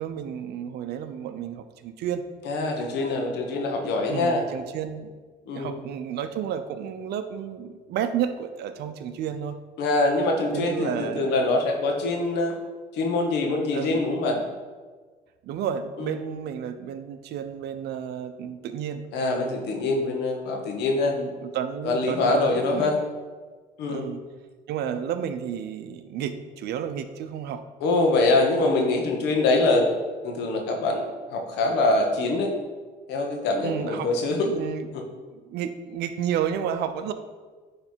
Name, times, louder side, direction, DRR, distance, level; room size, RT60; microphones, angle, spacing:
voice 1, 0.0-2.2 4.1-5.1 5.5-9.6 10.5-11.3 13.7-14.0 15.4-19.0 21.0-22.9 23.9-24.2 24.7-27.6 33.6-34.1 34.4-34.9 35.3-37.1, right 8 dB, 75° right, 9 dB, 0.6 m, -31 dB
voice 2, 2.4-4.4 5.5-5.7 9.8-12.5 12.9-14.4 16.0-16.1 19.1-21.2 21.8-23.0 23.8-24.0 27.8-29.9 30.2-32.5 33.1-34.5 34.9-35.0, left 2 dB, 85° left, 3 dB, 1.2 m, -24 dB
9.7 x 3.3 x 4.5 m, 1.4 s
cardioid pair, 110°, 17 cm